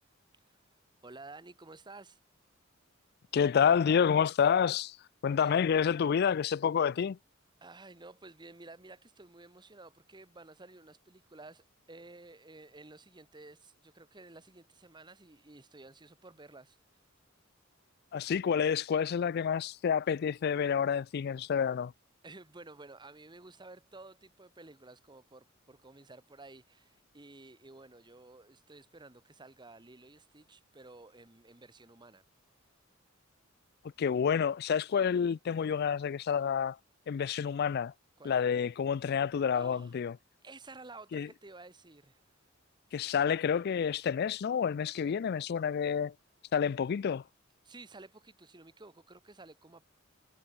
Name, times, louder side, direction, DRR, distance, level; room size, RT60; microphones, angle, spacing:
voice 1, 1.0-2.2 5.3-5.6 7.6-16.8 22.2-32.2 38.2-38.4 39.5-40.0 40.4-42.2 47.6-49.8, right 2 dB, 20° right, 1.3 m, -52 dB
voice 2, 3.3-5.0 5.2-7.2 18.1-21.9 34.0-36.8 37.1-37.9 38.2-40.1 41.1-41.3 42.9-46.1 46.5-47.2, left 7 dB, 50° left, 0.3 m, -28 dB
head